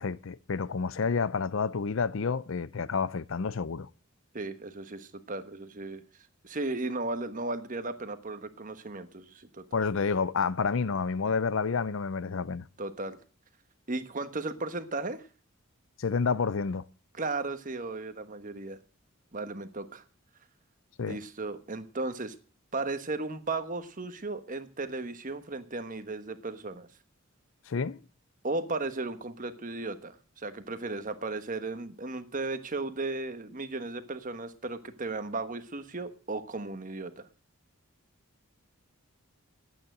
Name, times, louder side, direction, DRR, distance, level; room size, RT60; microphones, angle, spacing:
voice 1, 0.0-3.9 9.7-12.6 16.0-16.8 21.0-21.2 27.7-28.0, left 5 dB, 65° left, 0.5 m, -29 dB
voice 2, 4.3-6.0 6.4-9.8 12.8-13.2 13.9-15.2 17.2-18.8 19.3-20.0 21.0-22.4 22.7-26.9 28.4-37.2, right 3 dB, 40° right, 1.2 m, -35 dB
11.5 x 9.0 x 7.7 m
head